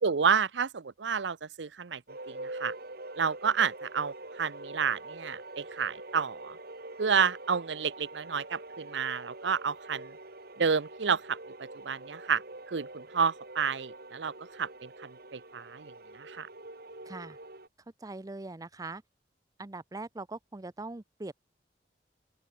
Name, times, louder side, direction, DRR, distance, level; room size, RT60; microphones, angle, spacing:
voice 1, 0.0-2.0 2.3-2.7 3.2-6.6 7.0-10.1 10.6-11.4 11.8-12.4 12.7-15.9 16.2-16.5, right 6 dB, 80° right, 0.7 m, -30 dB
sound 1, 2.1-17.7, right 2 dB, 60° right, 4.3 m, -45 dB
voice 2, 17.0-17.4 18.0-19.0 19.6-21.3, right 2 dB, 20° right, 0.5 m, -41 dB
open air
head